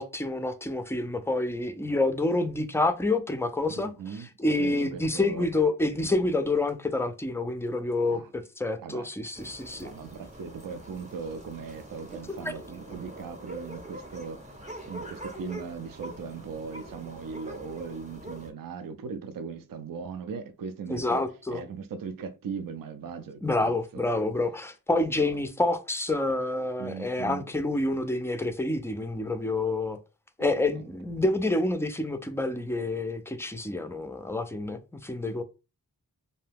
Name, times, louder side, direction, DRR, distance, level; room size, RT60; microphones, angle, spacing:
voice 1, 0.0-3.9 4.4-9.9 20.9-21.6 23.4-30.0 30.4-35.4, left 2 dB, 5° left, 0.4 m, -28 dB
voice 2, 3.7-4.3 4.6-5.5 8.1-8.3 8.8-9.1 9.7-21.2 21.5-24.2 25.1-25.4 26.8-27.5 30.4-30.8, right 5 dB, 60° right, 0.5 m, -39 dB
sound 1, 9.3-18.5, right 1 dB, 20° right, 0.7 m, -44 dB
2.7 x 2.2 x 3.4 m
wide cardioid pair, 55°, 38 cm